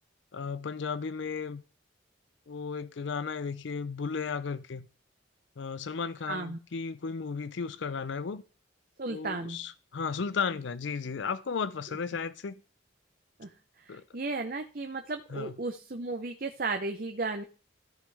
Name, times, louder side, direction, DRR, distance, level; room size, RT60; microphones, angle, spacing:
voice 1, 0.3-1.6 2.5-4.9 5.6-8.4 9.1-12.5 13.9-14.0 15.3-15.5, left 5 dB, 75° left, 0.5 m, -34 dB
voice 2, 6.3-6.6 9.0-9.6 13.4-13.5 13.8-17.4, right 3 dB, 45° right, 0.7 m, -34 dB
14.0 x 5.2 x 3.5 m
head